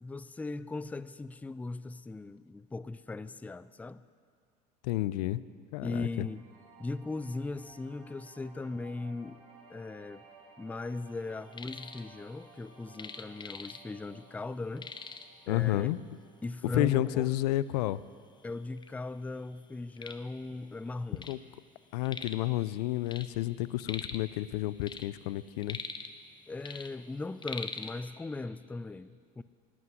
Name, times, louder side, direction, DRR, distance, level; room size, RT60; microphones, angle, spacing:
voice 1, 0.0-4.0 5.8-6.4 6.8-9.4 9.7-10.3 10.6-14.9 15.5-15.9 16.4-17.3 18.4-21.2 26.5-29.4, left 3 dB, 5° left, 0.4 m, -38 dB
voice 2, 4.8-5.4 5.7-6.3 15.5-16.0 16.7-18.0 21.3-21.4 21.9-25.8, left 16 dB, 80° left, 0.5 m, -30 dB
sound 1, 5.8-16.9, right 4 dB, 70° right, 3.6 m, -58 dB
sound 2, 11.3-12.1 12.3-14.1 14.4-14.5 14.8-15.4 16.2-16.3 16.8-16.9 17.7-17.8 18.0-18.9 19.4-21.4 21.7-22.5 22.8-24.3 24.7-26.3 26.6-27.9, left 5 dB, 20° left, 0.9 m, -43 dB
12.0 x 9.6 x 9.5 m
hypercardioid pair, 90°, 20 cm